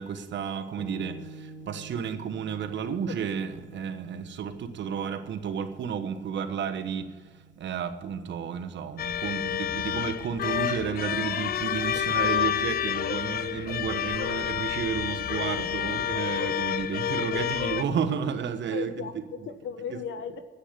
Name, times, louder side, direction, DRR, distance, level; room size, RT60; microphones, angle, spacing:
voice 1, 0.0-18.9 19.9-20.0, right 7 dB, 65° right, 1.3 m, -32 dB
sound 1, 0.8-10.4, right 3 dB, 5° right, 2.6 m, -49 dB
voice 2, 2.8-3.2 3.7-3.8 16.9-17.8 18.7-20.4, left 7 dB, 75° left, 1.3 m, -38 dB
sound 2, 9.0-17.8, left 10 dB, 50° left, 0.5 m, -29 dB
9.9 x 8.5 x 9.7 m
cardioid pair, 90°, 20 cm